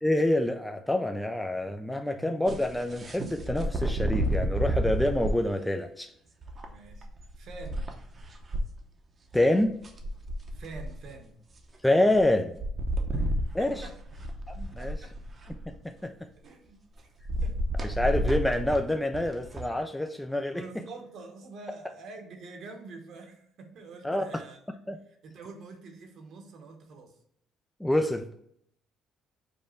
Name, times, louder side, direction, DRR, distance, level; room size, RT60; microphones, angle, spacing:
voice 1, 0.0-6.1 9.3-9.8 11.8-12.5 13.5-13.8 14.5-15.0 15.5-15.6 15.8-16.1 17.8-20.6 24.0-24.2 24.9-25.0 27.8-28.2, left 1 dB, 5° left, 6 dB, 0.4 m, -27 dB
voice 2, 2.0-2.4 6.6-7.1 7.4-7.9 10.5-11.4 13.1-14.0 14.8-15.1 16.4-17.1 17.4-17.6 20.5-24.6 25.2-27.2, right 3 dB, 65° right, 3 dB, 1.0 m, -46 dB
sound 1, 2.4-5.4 6.4-8.6 9.3-9.4 9.6-11.1 12.2-12.3 12.5-15.7 17.2-19.7, right 1 dB, 35° right, 0.7 m, -31 dB
5.2 x 2.2 x 4.3 m, 0.69 s
cardioid pair, 105°, 0 cm